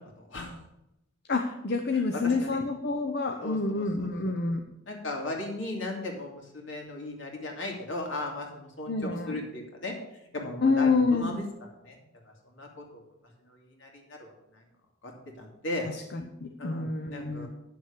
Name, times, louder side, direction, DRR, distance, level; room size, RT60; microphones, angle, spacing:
voice 1, 0.2-0.6 1.9-2.6 3.4-4.1 4.9-8.9 9.3-9.9 10.3-11.4 11.8-12.0 12.2-13.0 13.5-14.6 15.0-15.1 15.4-15.8 16.6-17.5, left 2 dB, 70° left, 1 dB, 2.8 m, -37 dB
voice 2, 1.3-4.6 8.9-9.4 10.6-11.4 15.8-17.5, left 3 dB, 55° left, 4 dB, 0.8 m, -28 dB
9.5 x 7.0 x 6.7 m, 0.88 s
head